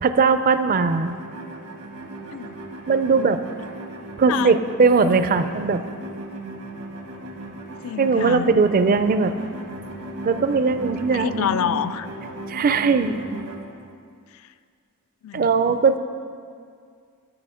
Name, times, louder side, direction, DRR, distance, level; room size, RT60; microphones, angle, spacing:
voice 1, 0.0-1.2 2.9-3.4 4.2-5.8 8.0-9.3 10.3-11.6 12.5-13.2 15.3-16.0, right 4 dB, 40° right, 10 dB, 0.4 m, -19 dB
sound 1, 0.7-13.6, right 1 dB, 90° right, 1.3 m, -37 dB
voice 2, 7.8-8.5 11.1-12.1 15.2-15.8, left 9 dB, 70° left, 14 dB, 0.3 m, -27 dB
9.7 x 7.0 x 5.0 m, 2.2 s
head